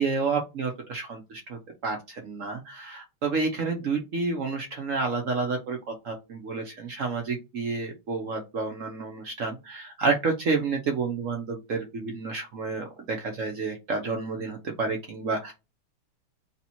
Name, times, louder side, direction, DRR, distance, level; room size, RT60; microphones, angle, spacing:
voice 1, 0.0-15.5, right 4 dB, 65° right, 3 dB, 0.7 m, -30 dB
3.4 x 2.9 x 4.2 m, 0.26 s
omnidirectional pair, 2.4 m